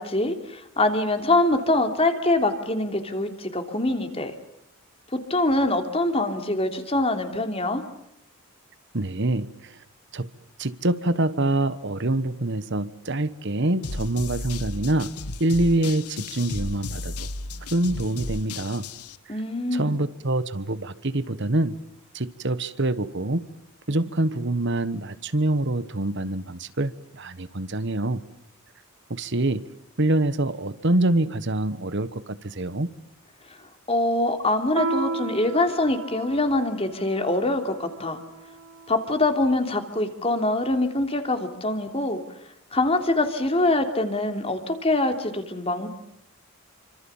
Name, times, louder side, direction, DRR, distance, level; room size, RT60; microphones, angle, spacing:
voice 1, 0.0-4.3 5.1-7.8 19.3-19.9 33.9-38.2 38.9-42.2 42.7-45.9, left 2 dB, 25° left, 6 dB, 3.1 m, -24 dB
voice 2, 8.9-9.8 10.1-10.3 10.6-15.1 15.4-17.3 17.7-18.9 19.3-19.4 19.7-21.8 22.1-23.4 23.9-28.2 29.1-29.6 30.0-32.9, right 2 dB, 50° right, 14 dB, 1.2 m, -25 dB
sound 1, 13.8-19.2, left 2 dB, 90° left, 1.4 m, -34 dB
Piano, 34.8-39.7, right 3 dB, 70° right, 1.9 m, -34 dB
28.5 x 26.0 x 7.2 m, 0.81 s
head